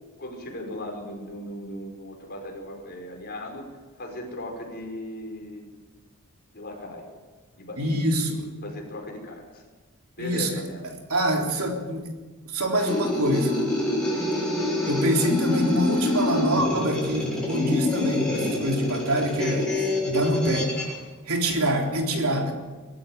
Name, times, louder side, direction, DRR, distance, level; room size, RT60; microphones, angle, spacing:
voice 1, 0.2-3.6 4.0-5.7 6.5-7.1 7.6-8.4 8.6-9.6 10.2-10.9, left 1 dB, 45° left, 1 dB, 5.4 m, -37 dB
voice 2, 7.8-8.5 10.2-10.5 11.1-12.1 12.5-13.6 14.9-19.7 20.0-20.7 21.3-22.5, equal, 70° right, 1 dB, 3.7 m, -25 dB
speaker sound test, 12.7-20.9, left 1 dB, 5° left, 6.8 m, -26 dB
23.0 x 13.0 x 9.5 m, 1.3 s
head